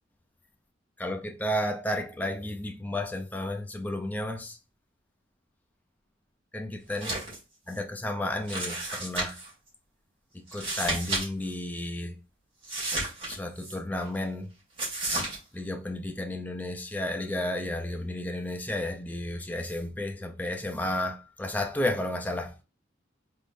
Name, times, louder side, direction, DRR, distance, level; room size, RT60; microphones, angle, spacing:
voice 1, 1.0-4.6 6.5-7.1 7.7-9.4 10.3-12.2 13.2-14.5 15.5-22.5, left 1 dB, 10° left, 0.5 m, -32 dB
sound 1, 6.9-7.4 7.7-7.8 8.5-9.5 10.5-11.3 11.5-11.6 12.6-13.7 14.8-15.4, right 2 dB, 30° right, 1.9 m, -32 dB
3.7 x 3.7 x 2.5 m
head